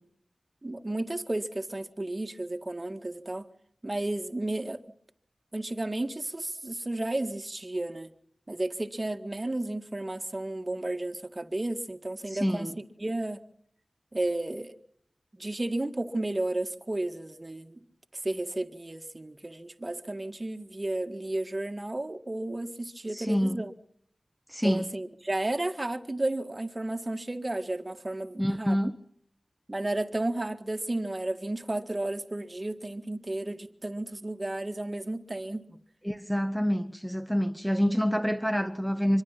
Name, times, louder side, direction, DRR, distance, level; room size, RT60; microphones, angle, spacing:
voice 1, 0.6-3.5 3.8-4.8 5.5-8.1 8.5-13.4 14.1-14.7 15.4-17.8 18.2-23.7 24.6-28.8 29.7-35.8, right 2 dB, 30° right, 1.9 m, -33 dB
voice 2, 12.3-12.7 23.1-23.6 24.5-24.9 28.4-28.9 36.0-39.2, equal, ahead, 1.4 m, -27 dB
26.0 x 23.0 x 6.0 m
wide cardioid pair, 55°, 0 cm